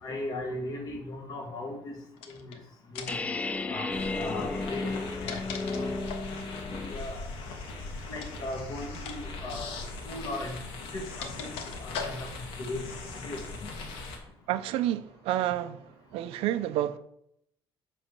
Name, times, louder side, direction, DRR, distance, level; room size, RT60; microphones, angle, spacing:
voice 1, 0.0-1.9 2.4-2.5 2.9-3.2 3.7-3.9 4.1-4.9 5.2-5.4 5.8-5.9 6.8-7.3 8.1-9.7 10.1-10.6 10.9-11.5 11.8-12.3 12.6-12.9 13.1-13.7, left 2 dB, 40° left, 2.4 m, -37 dB
sound 1, 2.2-2.6 3.0-3.4 4.9-6.4 8.2-8.5 8.9-9.2 9.5-9.6 10.6-12.5, left 6 dB, 90° left, 1.5 m, -40 dB
sound 2, 3.1-7.1, left 3 dB, 15° left, 0.4 m, -33 dB
sound 3, 3.9-14.2, left 3 dB, 70° left, 2.7 m, -40 dB
voice 2, 14.5-17.0, right 13 dB, 90° right, 0.7 m, -30 dB
10.0 x 4.2 x 7.6 m
cardioid pair, 170°, 10 cm